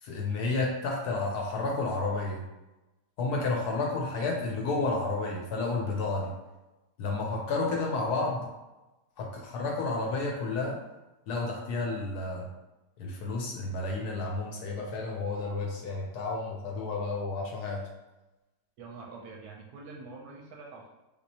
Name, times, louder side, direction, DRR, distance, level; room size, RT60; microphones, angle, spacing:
voice 1, 0.0-2.4 3.2-6.3 7.0-8.5 9.2-10.8 11.3-12.5 13.0-17.8, left 3 dB, 75° left, -1 dB, 1.0 m, -31 dB
voice 2, 18.8-20.9, right 3 dB, 70° right, -1 dB, 1.0 m, -45 dB
3.5 x 2.7 x 2.7 m, 1.0 s
omnidirectional pair, 1.9 m